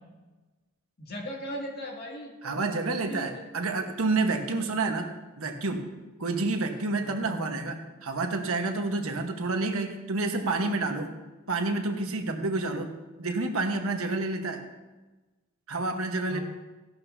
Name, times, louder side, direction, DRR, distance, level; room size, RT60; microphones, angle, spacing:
voice 1, 1.0-3.5 7.0-7.4 16.3-16.4, equal, 50° left, -1 dB, 2.3 m, -39 dB
voice 2, 2.4-5.1 5.4-5.9 6.2-11.1 11.5-14.6 15.7-16.4, right 3 dB, 75° right, 4 dB, 1.3 m, -29 dB
15.5 x 12.0 x 2.7 m, 1.2 s
head